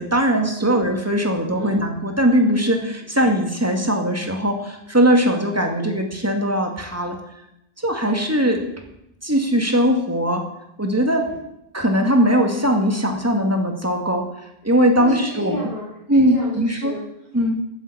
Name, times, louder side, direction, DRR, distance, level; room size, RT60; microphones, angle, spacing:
voice 1, 0.0-7.2 7.8-8.6 9.2-10.4 10.8-11.2 11.7-14.3 14.6-15.6 16.1-16.9 17.3-17.6, equal, 15° right, 3 dB, 2.0 m, -20 dB
voice 2, 14.7-17.4, equal, 40° left, -7 dB, 4.9 m, -34 dB
13.5 x 7.3 x 8.6 m, 0.83 s
omnidirectional pair, 1.0 m